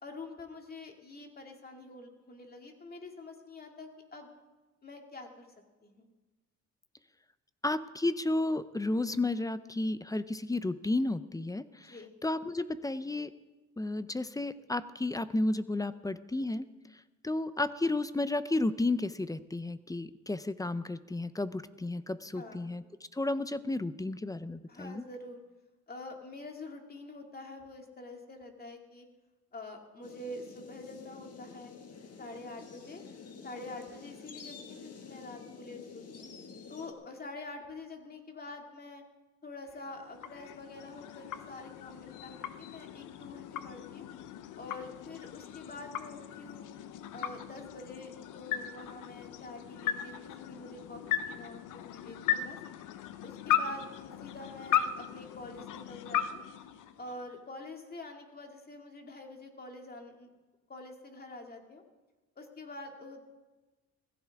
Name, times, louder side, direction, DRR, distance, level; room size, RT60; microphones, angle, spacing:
voice 1, 0.0-4.3 4.8-5.5 5.8-6.1 11.8-12.1 22.3-22.7 24.7-25.4 25.9-29.1 29.5-31.7 32.2-33.0 33.4-36.3 36.7-39.0 39.4-44.1 44.6-46.7 47.1-52.6 53.2-56.4 57.0-60.3 60.7-61.8 62.4-63.3, left 2 dB, 30° left, 2 dB, 2.3 m, -46 dB
voice 2, 7.6-13.3 13.8-16.7 16.9-22.8 23.1-25.0, left 2 dB, 10° left, 14 dB, 0.5 m, -32 dB
sound 1, 30.0-36.9, left 5 dB, 55° left, 1.8 m, -49 dB
sound 2, 39.7-57.4, left 10 dB, 85° left, 0.8 m, -37 dB
17.0 x 15.5 x 3.6 m, 1.2 s
cardioid pair, 90°, 30 cm